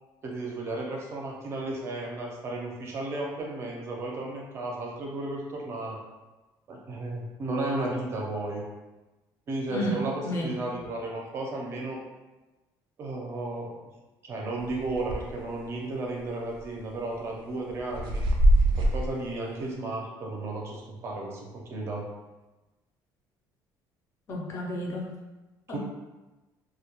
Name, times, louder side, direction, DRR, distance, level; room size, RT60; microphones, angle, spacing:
voice 1, 0.2-6.0 6.7-8.6 9.5-12.0 13.0-13.7 14.2-18.2 18.8-22.0 25.7-25.8, right 2 dB, 30° right, -2 dB, 0.5 m, -34 dB
voice 2, 9.7-10.5 24.3-25.2 25.7-25.8, equal, 35° left, -2 dB, 0.5 m, -32 dB
sound 1, 14.7-15.4 15.8-15.9 16.5-16.9 17.5-19.1, right 1 dB, 85° right, 0.4 m, -23 dB
2.2 x 2.2 x 2.9 m, 1.1 s
cardioid pair, 165°, 8 cm